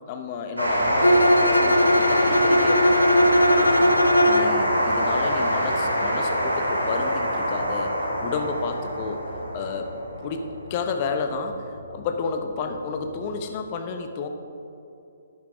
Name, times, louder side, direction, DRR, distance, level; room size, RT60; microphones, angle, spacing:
voice 1, 0.1-3.1 3.5-4.0 4.2-7.9 8.2-9.2 9.5-9.9 10.2-14.3, left 5 dB, 35° left, 5 dB, 0.9 m, -31 dB
sound 1, 0.6-13.5, equal, 90° right, 2.3 m, -25 dB
Bowed string instrument, 1.0-4.6, left 1 dB, 85° left, 0.6 m, -19 dB
11.5 x 8.7 x 3.6 m, 2.7 s
figure-of-eight pair, 130°, 0 cm